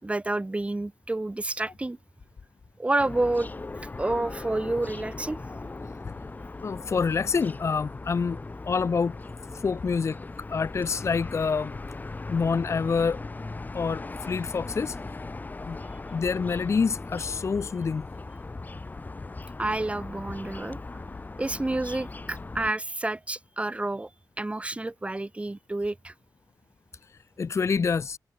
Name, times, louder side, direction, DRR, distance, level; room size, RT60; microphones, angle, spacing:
voice 1, 0.0-2.0 2.8-3.5 4.0-5.4 19.6-21.0 21.4-24.1 24.4-26.1, right 2 dB, 20° right, 4.1 m, -29 dB
sound 1, 3.0-22.7, left 3 dB, 25° left, 1.3 m, -39 dB
voice 2, 6.6-8.4 8.6-9.2 9.5-10.2 10.5-11.8 12.3-13.2 13.7-15.2 15.6-15.8 16.1-18.1 27.4-28.2, left 5 dB, 45° left, 0.6 m, -27 dB
wide cardioid pair, 155°, 7 cm